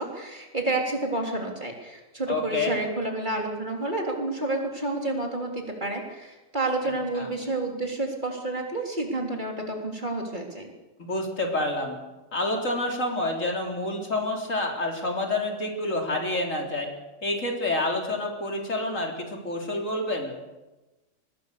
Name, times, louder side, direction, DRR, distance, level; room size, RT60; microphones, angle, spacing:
voice 1, 0.0-10.7, right 2 dB, 35° right, 1 dB, 3.9 m, -30 dB
voice 2, 2.3-2.8 6.8-7.3 11.0-12.0 12.3-16.9 17.2-20.4, left 2 dB, 70° left, 1 dB, 4.2 m, -28 dB
24.5 x 20.0 x 6.9 m, 1.1 s
omnidirectional pair, 1.4 m